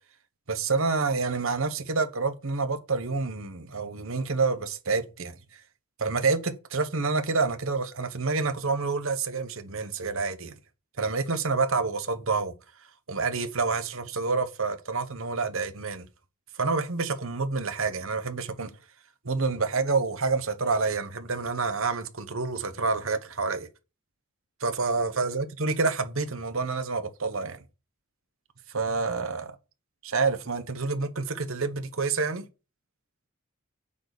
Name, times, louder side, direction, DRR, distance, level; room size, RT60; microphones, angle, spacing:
voice 1, 0.5-5.4 6.0-10.5 11.0-12.5 13.1-16.1 16.5-18.7 19.2-23.7 24.6-27.6 28.7-29.5 30.0-32.5, right 4 dB, 60° right, 1.1 m, -28 dB
8.9 x 4.1 x 6.7 m
head